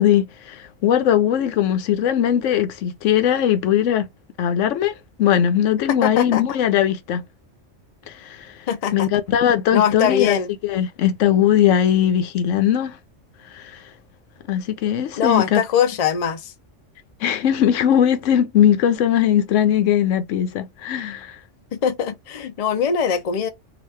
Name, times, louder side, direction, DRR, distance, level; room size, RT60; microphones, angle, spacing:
voice 1, 0.0-4.1 4.4-7.2 8.1-8.5 8.9-10.4 10.6-13.0 13.5-13.8 14.5-15.6 17.2-21.4, left 10 dB, 80° left, 1.0 m, -19 dB
voice 2, 5.9-6.4 8.7-9.1 9.7-10.5 15.2-16.5 21.7-23.5, left 7 dB, 50° left, 0.4 m, -22 dB
3.0 x 2.4 x 3.1 m
omnidirectional pair, 1.3 m